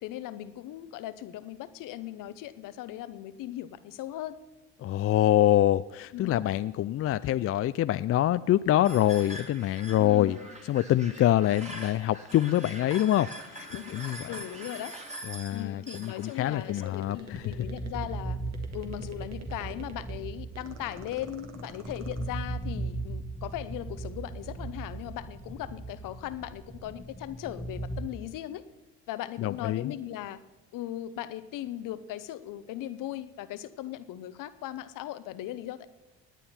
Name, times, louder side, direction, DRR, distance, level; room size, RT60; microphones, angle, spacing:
voice 1, 0.0-4.4 6.1-6.4 10.0-10.5 13.7-14.9 15.5-18.4 18.7-28.6 29.1-30.4 30.7-35.9, left 13 dB, 70° left, 14 dB, 0.8 m, -38 dB
voice 2, 4.8-10.4 10.7-14.3 15.3-17.4 29.4-29.9, left 13 dB, 45° left, 15 dB, 0.4 m, -25 dB
sound 1, 8.8-16.9, right 1 dB, 20° right, 2.4 m, -44 dB
sound 2, 16.5-18.2 18.5-20.2 20.5-22.3, right 5 dB, 50° right, 1.9 m, -47 dB
sound 3, 17.0-28.0, right 2 dB, ahead, 1.4 m, -38 dB
18.5 x 9.2 x 4.3 m, 1.1 s
supercardioid pair, 65°, 34 cm